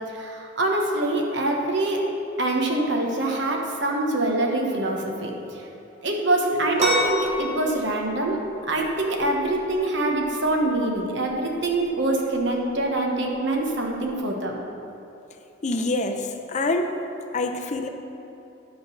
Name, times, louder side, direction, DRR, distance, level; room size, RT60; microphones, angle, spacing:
voice 1, 0.1-2.0 2.4-5.6 6.0-8.4 8.7-14.6, right 2 dB, 65° right, 0 dB, 1.2 m, -24 dB
sound 1, 6.8-14.2, equal, 35° right, 1.2 m, -32 dB
voice 2, 15.6-16.9 17.3-17.9, left 2 dB, 35° left, 5 dB, 0.6 m, -26 dB
10.5 x 3.9 x 6.9 m, 3.0 s
head